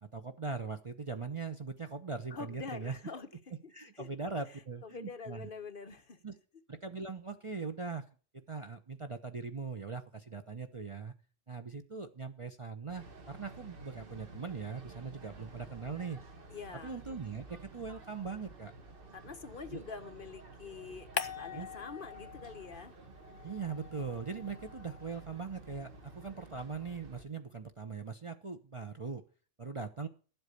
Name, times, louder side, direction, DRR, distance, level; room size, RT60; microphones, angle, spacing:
voice 1, 0.0-3.0 3.7-5.5 6.2-6.3 6.7-8.0 8.5-11.1 11.5-16.2 16.8-18.7 19.7-19.8 21.5-21.7 23.4-29.2 29.6-30.1, right 5 dB, 30° right, 0.7 m, -40 dB
voice 2, 2.3-3.3 3.6-4.1 4.5-6.2 16.5-17.0 19.1-22.9, left 5 dB, 50° left, 1.0 m, -45 dB
sound 1, 12.9-27.2, right 3 dB, 45° right, 1.6 m, -52 dB
sound 2, 21.2-22.8 23.1-25.6, left 7 dB, 80° left, 1.4 m, -43 dB
12.0 x 8.0 x 6.7 m
omnidirectional pair, 1.3 m